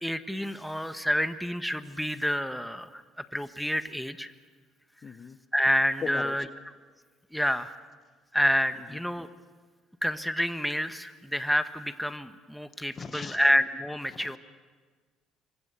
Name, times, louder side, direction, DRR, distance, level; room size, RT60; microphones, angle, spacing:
voice 1, 0.0-3.0 3.3-4.3 5.5-6.4 7.3-7.7 8.3-9.3 10.0-14.4, equal, ahead, 10 dB, 1.5 m, -28 dB
voice 2, 5.0-5.4 6.0-6.4 8.8-9.0 12.9-13.5 14.1-14.4, left 6 dB, 40° left, 12 dB, 1.1 m, -39 dB
27.5 x 23.5 x 7.0 m, 1.5 s
hypercardioid pair, 65°, 0 cm